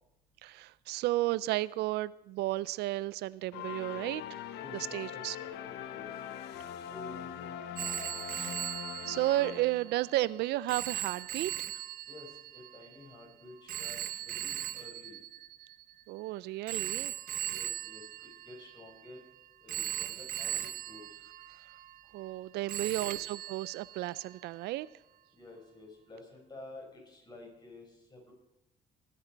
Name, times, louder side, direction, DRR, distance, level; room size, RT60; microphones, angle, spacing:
voice 1, 0.4-4.2 4.9-5.4 8.3-8.6 9.1-11.5 16.1-17.1 22.1-24.9, right 17 dB, 75° right, 19 dB, 0.4 m, -33 dB
sound 1, 3.5-10.1, left 9 dB, 85° left, 0.8 m, -42 dB
voice 2, 4.6-6.2 6.8-7.8 12.1-15.2 17.4-19.2 19.6-21.1 22.8-23.2 25.3-28.3, left 2 dB, 25° left, 0 dB, 5.4 m, -51 dB
Telephone, 7.8-16.1 16.7-19.2 19.7-22.4 22.7-24.4, right 11 dB, 55° right, 0.7 m, -39 dB
20.0 x 9.8 x 4.5 m, 0.92 s
cardioid pair, 110°, 17 cm